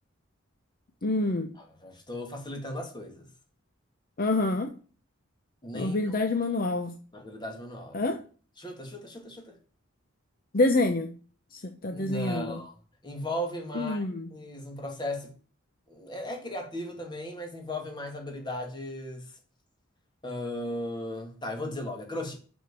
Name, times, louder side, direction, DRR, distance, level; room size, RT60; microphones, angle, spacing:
voice 1, 1.0-1.5 4.2-4.7 5.7-6.9 7.9-8.2 10.5-11.1 11.5-12.6 13.7-14.3, left 2 dB, 45° left, 0.7 m, -27 dB
voice 2, 1.6-3.3 5.6-6.2 7.1-8.0 8.6-9.6 11.9-12.8 13.0-15.3 15.9-19.4 20.2-22.4, left 1 dB, 20° left, 2.0 m, -36 dB
6.4 x 6.2 x 6.8 m
head